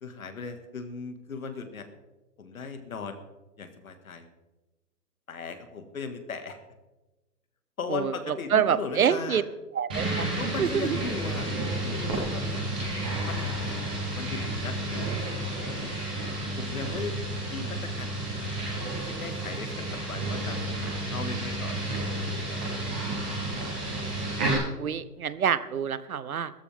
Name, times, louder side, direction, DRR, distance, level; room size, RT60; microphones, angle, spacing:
voice 1, 0.0-1.9 2.4-3.2 3.6-4.3 5.3-6.6 7.8-9.4 10.3-12.6 13.3-13.8 14.1-15.2 15.6-16.0 16.6-17.2 17.5-18.1 18.4-18.6 19.1-20.6 21.1-23.0, left 5 dB, 60° left, 7 dB, 2.1 m, -38 dB
voice 2, 8.5-9.4 9.8-10.3 10.6-11.0 24.8-26.5, right 8 dB, 60° right, 15 dB, 0.9 m, -26 dB
sound 1, 9.9-24.5, right 1 dB, 5° right, 0.9 m, -31 dB
16.5 x 14.0 x 3.7 m, 1.1 s
hypercardioid pair, 180°, 48 cm